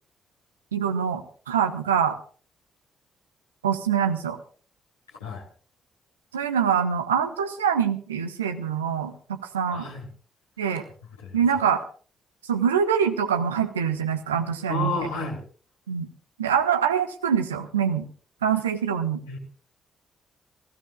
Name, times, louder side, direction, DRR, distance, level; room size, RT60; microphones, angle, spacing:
voice 1, 0.7-1.2 1.5-2.2 3.6-4.4 6.3-9.9 10.6-10.8 11.3-11.8 12.4-14.9 15.9-16.1 16.4-18.0 18.4-19.2, right 7 dB, 85° right, 7 dB, 1.2 m, -24 dB
voice 2, 9.7-10.1 11.2-11.4 14.7-15.4 19.3-19.4, left 3 dB, 85° left, -4 dB, 4.2 m, -31 dB
28.5 x 16.5 x 2.4 m, 0.41 s
figure-of-eight pair, 40°, 0 cm